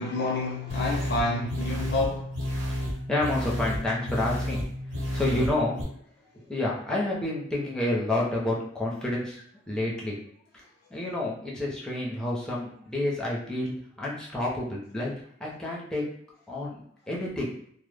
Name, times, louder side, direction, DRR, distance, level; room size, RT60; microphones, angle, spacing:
voice 1, 0.0-2.3 5.2-5.5, left 2 dB, 55° left, -2 dB, 0.4 m, -29 dB
sound 1, 0.7-5.8, equal, 85° right, 1.0 m, -31 dB
voice 2, 2.7-5.8 6.3-10.2 10.5-10.6 10.9-15.1 15.4-16.0 16.5-17.5, left 1 dB, 5° left, -4 dB, 0.5 m, -30 dB
2.0 x 2.0 x 3.2 m, 0.66 s
head